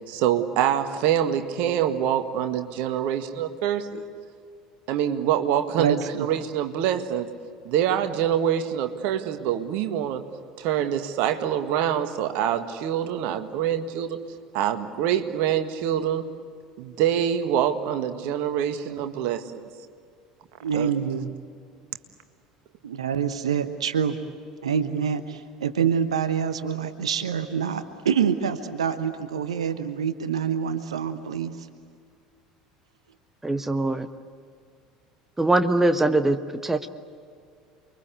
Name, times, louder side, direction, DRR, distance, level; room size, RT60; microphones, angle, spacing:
voice 1, 0.1-4.0 4.9-7.3 7.6-10.2 10.6-14.2 14.5-16.3 16.8-19.7 20.7-20.9, right 10 dB, 55° right, 8 dB, 1.8 m, -25 dB
voice 2, 5.8-6.3 20.6-21.3 22.8-24.2 24.6-31.5, right 7 dB, 75° right, 10 dB, 1.1 m, -26 dB
voice 3, 33.4-34.1 35.4-36.9, right 2 dB, 10° right, 9 dB, 1.3 m, -22 dB
29.5 x 23.0 x 8.2 m, 2.2 s
figure-of-eight pair, 65°, 3 cm